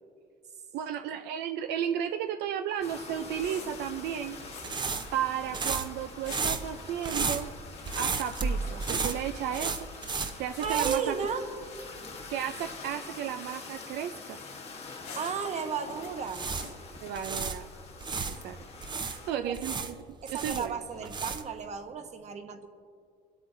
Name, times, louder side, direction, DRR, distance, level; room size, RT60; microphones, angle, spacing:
voice 1, 0.7-4.4 5.1-7.5 8.0-9.7 10.4-11.1 12.3-14.4 17.0-17.7 18.4-18.6 19.2-20.0 20.3-20.8, right 9 dB, 80° right, 7 dB, 0.5 m, -33 dB
sound 1, 2.8-16.7, left 4 dB, 75° left, 2.8 m, -52 dB
sound 2, 2.8-19.3, left 4 dB, 40° left, 1.1 m, -46 dB
sound 3, 3.8-11.9 12.1-12.3 16.0-18.4 18.8-21.6, right 4 dB, 25° right, 0.6 m, -34 dB
voice 2, 10.6-11.5 15.2-16.5 19.3-19.6 20.2-22.7, right 6 dB, 40° right, 7 dB, 1.0 m, -33 dB
23.0 x 8.5 x 2.6 m, 2.3 s
cardioid pair, 110°, 17 cm